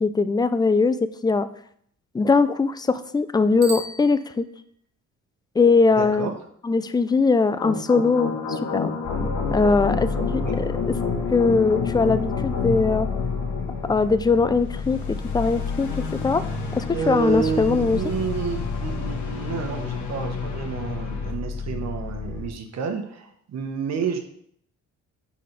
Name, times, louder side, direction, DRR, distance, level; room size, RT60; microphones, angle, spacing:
voice 1, 0.0-1.5 2.1-4.4 5.6-6.3 6.6-8.9 9.5-11.0 11.3-13.1 13.9-16.4 16.7-18.0, left 4 dB, 15° left, 12 dB, 0.4 m, -21 dB
Bicycle bell, 3.6-4.9, right 3 dB, 85° right, 0.9 m, -38 dB
voice 2, 6.0-6.3 10.3-10.6 16.9-24.2, right 6 dB, 60° right, 5 dB, 1.2 m, -30 dB
sound 1, 7.6-21.3, left 5 dB, 75° left, 1.6 m, -30 dB
sound 2, 9.0-22.5, left 4 dB, 45° left, 0.8 m, -32 dB
5.0 x 4.2 x 5.8 m, 0.65 s
cardioid pair, 90°, 30 cm